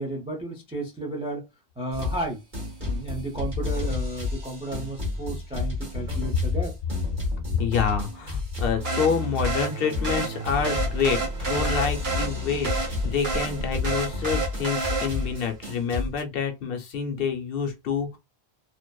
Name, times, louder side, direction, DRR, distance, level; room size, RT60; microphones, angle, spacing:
voice 1, 0.0-1.4 1.8-2.4 2.8-6.7 14.1-14.2, right 2 dB, 10° right, 0.3 m, -33 dB
sound 1, 1.9-2.3 2.5-16.2, left 3 dB, 50° right, 1.2 m, -31 dB
voice 2, 7.5-18.2, left 6 dB, 65° left, 0.8 m, -27 dB
sound 2, 8.8-15.4, right 4 dB, 70° right, 1.3 m, -30 dB
2.6 x 2.1 x 2.2 m
omnidirectional pair, 1.1 m